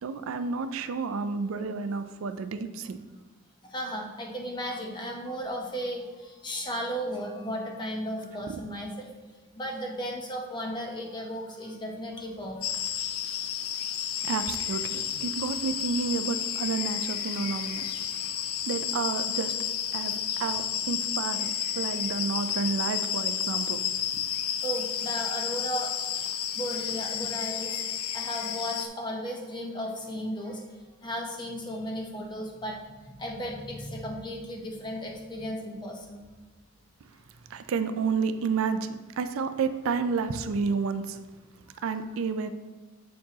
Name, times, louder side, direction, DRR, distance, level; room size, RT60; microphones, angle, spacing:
voice 1, 0.0-3.0 8.5-8.6 14.2-17.9 18.2-18.4 18.7-19.5 19.9-23.8 37.5-41.2 41.8-42.5, right 5 dB, 70° right, 10 dB, 0.4 m, -30 dB
voice 2, 3.7-6.0 6.4-9.1 9.6-12.6 24.6-25.9 26.5-27.8 28.1-30.6 31.0-32.8 33.0-36.2, equal, 20° left, 1 dB, 0.7 m, -35 dB
sound 1, 12.6-28.9, left 9 dB, 80° left, 0.4 m, -31 dB
7.3 x 4.5 x 2.8 m, 1.3 s
head